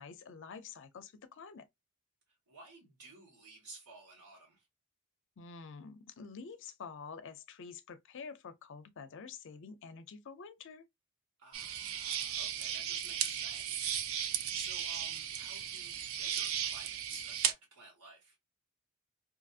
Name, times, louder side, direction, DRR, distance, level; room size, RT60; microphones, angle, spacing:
voice 1, 0.0-1.7 5.4-10.8, left 5 dB, 55° left, 0.5 m, -48 dB
voice 2, 2.5-4.7 11.4-18.4, right 3 dB, 85° right, 1.4 m, -53 dB
sound 1, 11.5-17.5, right 9 dB, 65° right, 0.5 m, -36 dB
2.7 x 2.7 x 2.4 m
head